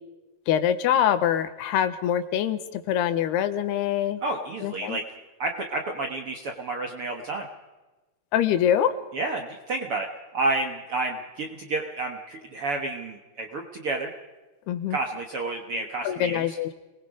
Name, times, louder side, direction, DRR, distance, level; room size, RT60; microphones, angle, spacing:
voice 1, 0.5-4.2 4.6-5.0 8.3-8.9 14.7-15.0 16.0-16.7, left 10 dB, 85° left, 10 dB, 3.1 m, -24 dB
voice 2, 4.2-5.0 5.4-7.5 9.1-10.1 10.3-14.1 14.9-16.4, right 2 dB, 55° right, 3 dB, 1.5 m, -30 dB
27.0 x 20.5 x 5.1 m, 1.1 s
omnidirectional pair, 4.6 m